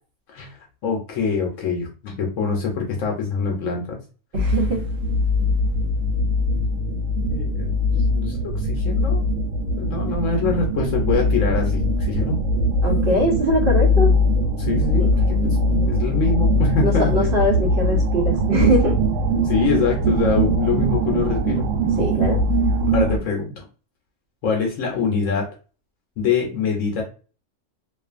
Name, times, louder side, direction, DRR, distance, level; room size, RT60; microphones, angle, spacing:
voice 1, 0.8-4.0 7.3-7.7 8.1-9.2 9.8-12.4 14.6-15.1 15.4-17.1 19.4-21.7 22.9-23.6 24.4-25.5 26.2-27.0, left 5 dB, 75° left, 0 dB, 1.0 m, -24 dB
voice 2, 4.3-4.8 12.8-14.1 15.0-15.1 16.8-19.0 22.0-22.4, equal, 50° right, -1 dB, 0.8 m, -21 dB
sound 1, 4.3-23.2, equal, 90° right, 1.1 m, -21 dB
2.5 x 2.4 x 2.4 m, 0.36 s
omnidirectional pair, 1.4 m